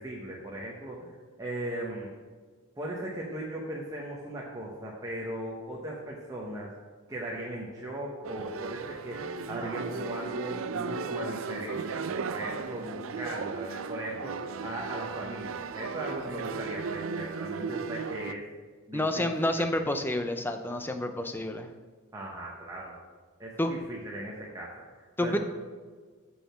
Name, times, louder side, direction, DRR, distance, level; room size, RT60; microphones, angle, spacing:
voice 1, 0.0-2.1 2.8-6.7 7.1-18.4 18.9-19.9 22.1-23.0 23.4-25.4, right 1 dB, 15° right, -4 dB, 1.0 m, -38 dB
sound 1, 8.2-18.3, right 5 dB, 75° right, 0.4 m, -36 dB
voice 2, 18.9-21.7 23.6-23.7 25.2-25.4, left 1 dB, 10° left, 7 dB, 0.6 m, -29 dB
6.5 x 6.1 x 6.2 m, 1.5 s
head